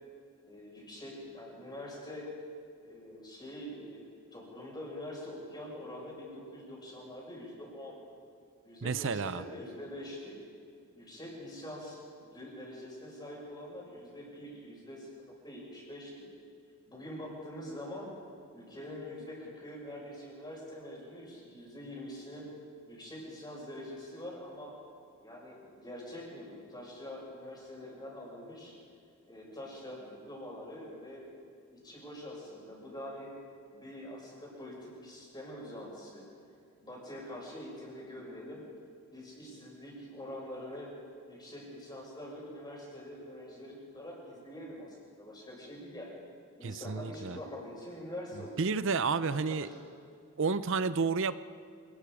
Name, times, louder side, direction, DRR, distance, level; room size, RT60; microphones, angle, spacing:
voice 1, 0.5-2.3 2.8-8.0 8.6-10.4 10.9-16.3 16.9-18.1 18.5-22.5 22.9-24.7 25.2-28.7 29.3-31.3 31.7-33.3 33.7-36.2 36.8-38.6 39.1-40.9 41.3-46.2 46.6-48.7 49.3-49.8, left 1 dB, 20° left, -3 dB, 6.5 m, -45 dB
voice 2, 8.8-9.4 46.6-47.4 48.6-49.7 50.4-51.4, right 5 dB, 60° right, 14 dB, 0.6 m, -30 dB
27.0 x 19.5 x 5.0 m, 2.4 s
head